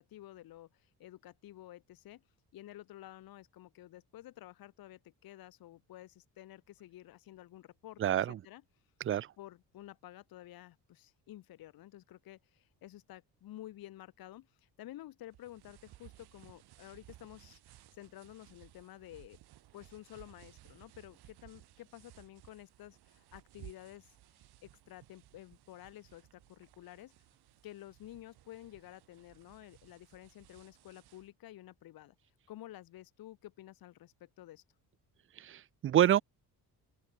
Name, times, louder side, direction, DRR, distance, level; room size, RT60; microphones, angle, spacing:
voice 1, 0.0-2.2 2.5-8.6 9.4-19.4 19.7-27.1 27.6-32.1 32.5-34.6, left 14 dB, 65° left, 1.6 m, -52 dB
voice 2, 8.0-8.4 9.1-9.3 35.4-36.2, right 11 dB, 35° right, 0.4 m, -27 dB
sound 1, 15.3-31.3, right 15 dB, 75° right, 2.4 m, -59 dB
open air
cardioid pair, 175°, 39 cm